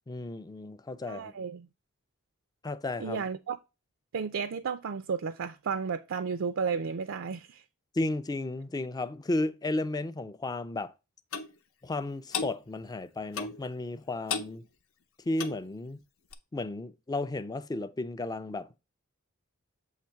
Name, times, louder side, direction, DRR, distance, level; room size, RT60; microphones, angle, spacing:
voice 1, 0.1-1.3 2.6-3.2 7.9-10.9 11.8-14.7 15.3-16.0 16.5-18.8, left 2 dB, 20° left, 0.4 m, -33 dB
voice 2, 1.0-1.7 3.0-3.6 4.1-7.6, right 6 dB, 65° right, 0.4 m, -33 dB
Clock, 11.3-11.5 12.3-12.5 13.3-13.6 14.3-14.5 15.3-15.6 16.3-16.4, left 5 dB, 80° left, 0.9 m, -33 dB
7.4 x 3.0 x 5.7 m
head